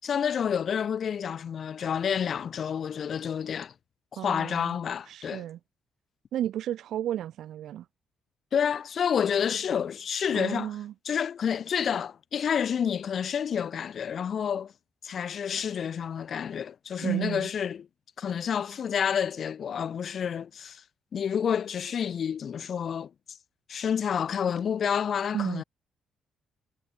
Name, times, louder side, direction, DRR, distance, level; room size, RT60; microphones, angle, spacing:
voice 1, 0.0-3.7 4.1-5.5 8.5-10.7 11.0-14.7 15.0-17.9 18.2-20.8 21.1-23.4 23.7-25.6, left 8 dB, 55° left, 6.2 m, -29 dB
voice 2, 4.2-4.8 5.1-5.6 6.3-7.9 10.3-10.9 17.0-17.5 25.3-25.6, right 11 dB, 75° right, 2.6 m, -32 dB
cardioid pair, 90°, 0 cm